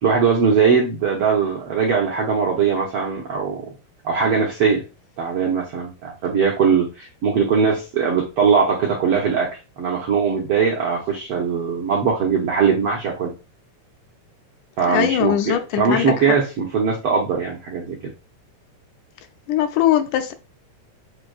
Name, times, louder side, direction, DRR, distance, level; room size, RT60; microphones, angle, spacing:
voice 1, 0.0-3.7 4.0-4.8 5.2-13.3 14.8-18.1, right 6 dB, 80° right, 1.3 m, -20 dB
voice 2, 14.9-16.1 19.5-20.3, left 11 dB, 80° left, 2.0 m, -20 dB
7.4 x 2.6 x 2.3 m
omnidirectional pair, 3.5 m